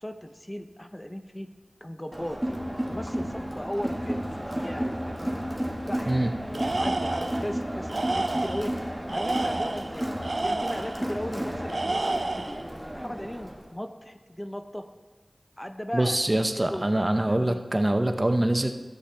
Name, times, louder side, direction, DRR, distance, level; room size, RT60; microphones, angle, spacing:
voice 1, 0.0-1.5 1.8-2.4 2.9-4.2 4.5-5.3 5.9-6.2 6.5-8.7 9.1-10.1 10.4-12.6 12.9-14.8 15.6-16.3 16.5-16.9 17.3-17.6, equal, 20° left, 7 dB, 0.6 m, -37 dB
Crowd, 2.1-13.7, equal, 10° right, 1.2 m, -32 dB
Tools, 6.5-7.4 7.9-8.7 9.1-11.0 11.7-12.6, right 2 dB, 80° right, 0.5 m, -30 dB
voice 2, 15.9-18.7, right 1 dB, 35° right, 7 dB, 0.7 m, -24 dB
13.0 x 8.3 x 3.3 m, 1.3 s
wide cardioid pair, 45°, 0 cm